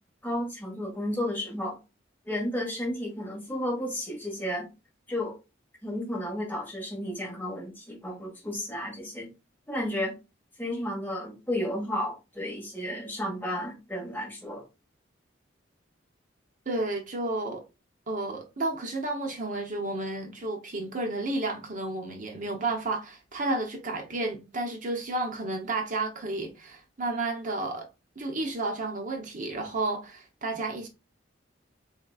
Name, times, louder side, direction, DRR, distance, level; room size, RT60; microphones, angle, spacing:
voice 1, 0.2-1.8 2.2-4.7 5.1-5.3 5.8-9.3 9.7-10.2 10.6-14.6, left 1 dB, 10° left, 1.6 m, -32 dB
voice 2, 16.7-17.6 18.1-27.9 28.2-30.9, right 2 dB, 45° right, 0.9 m, -31 dB
4.0 x 4.0 x 2.4 m
head